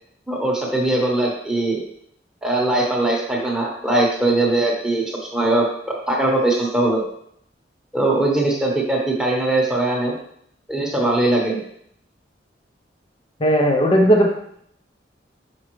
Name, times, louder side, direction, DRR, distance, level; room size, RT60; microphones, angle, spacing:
voice 1, 0.3-1.8 2.4-7.0 7.9-10.1 10.7-11.6, right 2 dB, 5° right, -3 dB, 1.0 m, -20 dB
voice 2, 13.4-14.3, equal, 30° left, 1 dB, 0.6 m, -16 dB
6.1 x 5.1 x 3.1 m, 0.69 s
head